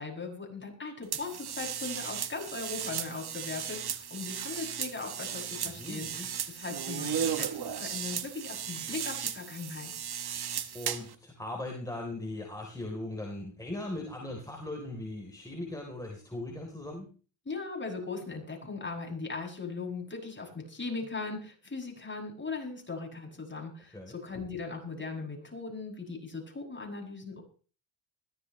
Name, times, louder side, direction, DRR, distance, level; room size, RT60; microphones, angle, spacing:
voice 1, 0.0-9.9 17.5-27.4, left 4 dB, 25° left, 0 dB, 7.9 m, -39 dB
sound 1, 1.1-11.1, right 8 dB, 50° right, 1.5 m, -36 dB
voice 2, 5.7-6.3 10.7-17.1 23.9-24.1, left 1 dB, 5° left, 0 dB, 4.0 m, -39 dB
20.5 x 16.5 x 3.3 m, 0.39 s
cardioid pair, 80°, 48 cm